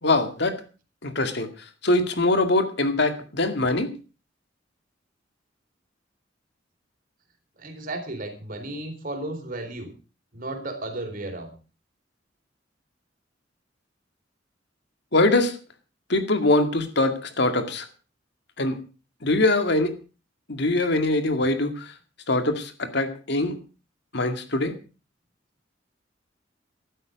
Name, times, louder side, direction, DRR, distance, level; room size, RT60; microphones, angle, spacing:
voice 1, 0.0-0.6 1.0-1.5 1.8-3.9 15.1-15.6 16.1-17.9 18.6-18.7 19.2-19.9 20.5-21.9 22.3-23.6 24.1-24.7, left 2 dB, 65° left, 7 dB, 2.2 m, -23 dB
voice 2, 7.6-9.9 10.3-11.5, right 2 dB, 50° right, 6 dB, 4.0 m, -34 dB
14.5 x 12.5 x 5.2 m, 0.35 s
head